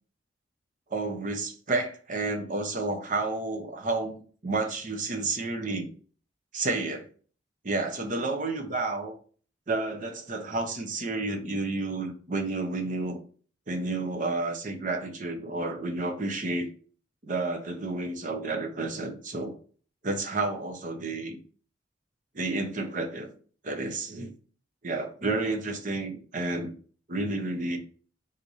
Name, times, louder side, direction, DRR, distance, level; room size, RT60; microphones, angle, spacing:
voice 1, 0.9-5.9 6.5-7.1 7.6-9.2 9.7-13.2 13.7-16.7 17.2-19.5 20.0-21.4 22.3-23.3 23.6-24.3 24.8-26.7 27.1-27.8, right 2 dB, 45° right, 0.8 m, -31 dB
4.1 x 2.7 x 4.8 m
head